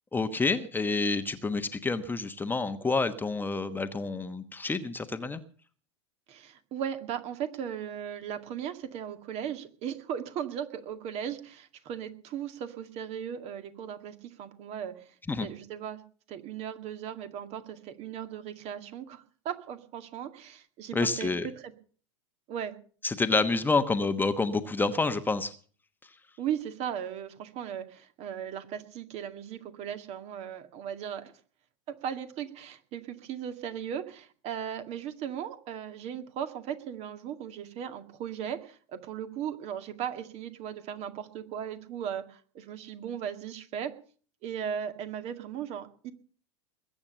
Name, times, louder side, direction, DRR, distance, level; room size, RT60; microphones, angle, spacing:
voice 1, 0.1-5.4 15.3-15.5 20.9-21.5 23.0-25.5, left 3 dB, 10° left, 9 dB, 1.2 m, -28 dB
voice 2, 6.3-15.1 15.4-16.0 16.3-21.7 22.5-22.7 26.4-31.3 31.9-43.9 44.4-46.1, right 9 dB, 45° right, 8 dB, 2.1 m, -37 dB
21.5 x 8.7 x 6.7 m, 0.43 s
figure-of-eight pair, 85°, 15 cm